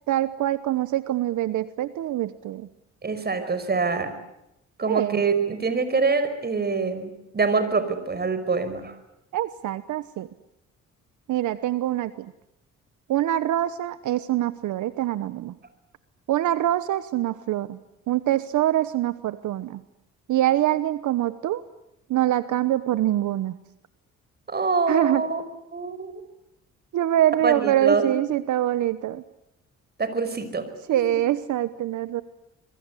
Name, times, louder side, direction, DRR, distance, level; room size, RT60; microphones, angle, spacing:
voice 1, 0.1-2.7 4.9-5.2 9.3-10.3 11.3-12.3 13.1-15.6 16.3-17.8 18.1-19.8 20.3-21.6 22.1-23.6 24.9-25.2 26.9-29.2 30.9-32.2, right 13 dB, 75° right, 14 dB, 1.0 m, -24 dB
voice 2, 3.0-4.1 4.8-9.0 24.5-25.4 25.7-26.1 27.4-28.1 30.0-30.7, right 4 dB, 35° right, 11 dB, 5.3 m, -25 dB
26.0 x 23.0 x 8.3 m, 0.87 s
cardioid pair, 90°, 30 cm